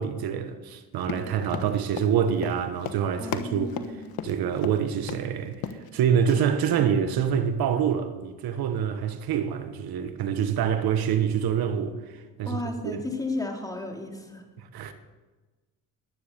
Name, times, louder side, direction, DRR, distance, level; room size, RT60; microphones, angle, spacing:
voice 1, 0.0-3.7 4.2-13.0 14.6-14.9, right 8 dB, 75° right, 1.4 m, -26 dB
Run, 1.0-4.8 5.1-5.3 5.5-5.9 6.3-6.4, left 9 dB, 75° left, 1.4 m, -35 dB
voice 2, 3.2-4.2 6.7-6.9 12.5-14.4, left 2 dB, 10° left, 4.0 m, -34 dB
20.5 x 10.0 x 6.9 m
supercardioid pair, 65°, 37 cm